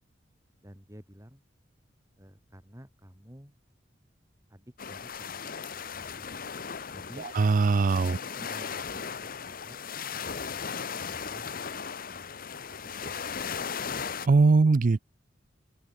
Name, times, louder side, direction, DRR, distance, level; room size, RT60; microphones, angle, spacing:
voice 1, 0.6-1.4 2.2-3.6 4.5-6.5 6.9-7.3 8.0-9.8 10.2-11.5 12.1-13.6, equal, 15° right, 3.2 m, -52 dB
sound 1, 4.8-14.3, left 6 dB, 50° left, 1.1 m, -37 dB
voice 2, 7.4-8.2 14.3-15.0, right 4 dB, 45° right, 0.4 m, -21 dB
open air
head